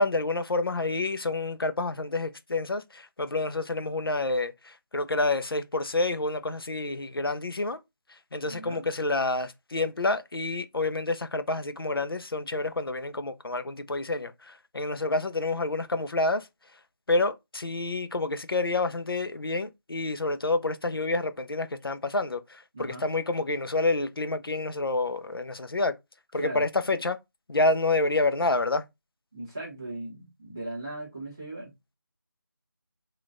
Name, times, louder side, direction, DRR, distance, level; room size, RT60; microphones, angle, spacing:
voice 1, 0.0-7.8 8.3-16.5 17.1-25.9 26.3-27.2 27.5-28.8, left 2 dB, 80° left, 0.6 m, -28 dB
voice 2, 8.4-8.8 22.7-23.0 26.3-26.6 29.3-31.7, right 2 dB, 10° right, 0.7 m, -38 dB
3.8 x 2.5 x 3.6 m
figure-of-eight pair, 180°, 12 cm